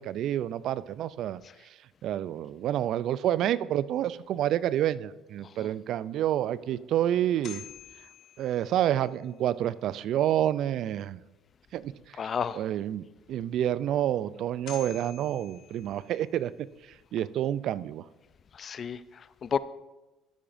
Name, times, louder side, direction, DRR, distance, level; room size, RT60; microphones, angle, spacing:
voice 1, 0.0-1.4 2.0-7.6 8.4-11.2 11.7-12.2 12.5-16.7 17.1-18.0, right 11 dB, 65° right, 17 dB, 0.3 m, -28 dB
sound 1, 7.2-9.3 14.3-14.4 14.7-16.6, left 10 dB, 65° left, 1.4 m, -48 dB
voice 2, 12.2-12.6 18.5-19.6, left 7 dB, 45° left, 17 dB, 0.4 m, -32 dB
13.5 x 8.6 x 2.6 m, 1.1 s
supercardioid pair, 75°, 0 cm